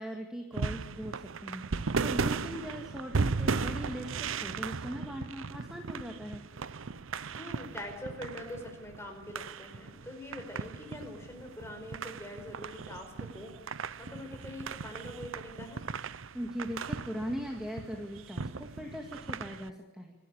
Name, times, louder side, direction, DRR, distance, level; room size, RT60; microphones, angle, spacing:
voice 1, 0.0-1.6 2.0-6.4 16.3-20.1, equal, 5° right, 2 dB, 2.1 m, -40 dB
sound 1, 0.5-19.7, right 4 dB, 75° right, 0.7 m, -37 dB
voice 2, 7.3-13.6 14.0-15.8, left 1 dB, 15° left, 3 dB, 5.1 m, -44 dB
28.0 x 12.5 x 8.8 m, 1.2 s
head